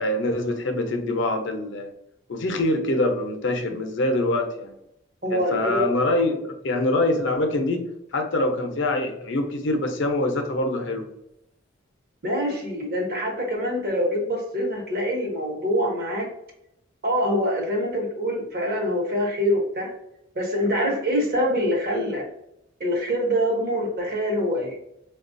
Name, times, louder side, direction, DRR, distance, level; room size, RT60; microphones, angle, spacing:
voice 1, 0.0-1.9 2.3-4.7 5.3-7.9 8.1-11.1, left 2 dB, 65° left, 5 dB, 0.6 m, -24 dB
voice 2, 5.2-5.8 12.2-16.3 17.0-19.9 20.3-22.3 22.8-24.8, equal, 50° right, 0 dB, 1.0 m, -25 dB
4.4 x 2.3 x 2.5 m, 0.80 s
head